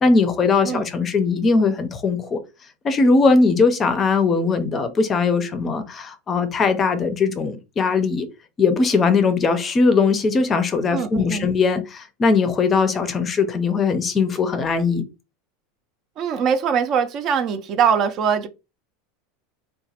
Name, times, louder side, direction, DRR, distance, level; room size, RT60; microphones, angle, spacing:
voice 1, 0.0-2.4 2.8-8.3 8.6-15.0, left 4 dB, 25° left, 0.5 m, -20 dB
voice 2, 10.9-11.5 16.2-18.5, right 7 dB, 40° right, 0.4 m, -22 dB
2.9 x 2.1 x 2.8 m
supercardioid pair, 130°, 0 cm